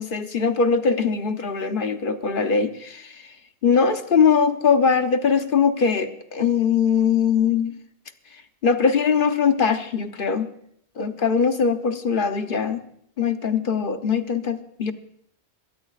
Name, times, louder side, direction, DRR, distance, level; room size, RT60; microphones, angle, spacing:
voice 1, 0.0-3.4 3.6-7.8 8.3-10.5 11.0-12.8 13.2-14.9, left 6 dB, 55° left, 8 dB, 1.0 m, -21 dB
22.0 x 17.0 x 2.5 m, 0.68 s
omnidirectional pair, 1.1 m